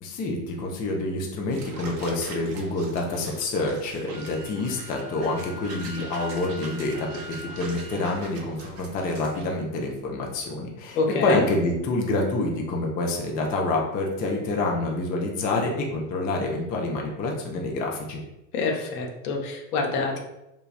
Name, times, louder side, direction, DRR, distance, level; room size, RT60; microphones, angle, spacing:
voice 1, 0.0-18.2, left 2 dB, 20° left, 0 dB, 0.3 m, -27 dB
sound 1, 1.5-9.5, right 3 dB, 75° right, 0.7 m, -44 dB
Wind instrument woodwind instrument, 4.1-8.1, left 1 dB, 40° right, 0.7 m, -43 dB
voice 2, 10.9-11.4 18.5-20.2, left 3 dB, 70° left, 2 dB, 0.7 m, -26 dB
3.2 x 2.2 x 2.3 m, 0.92 s
hypercardioid pair, 85°, 47 cm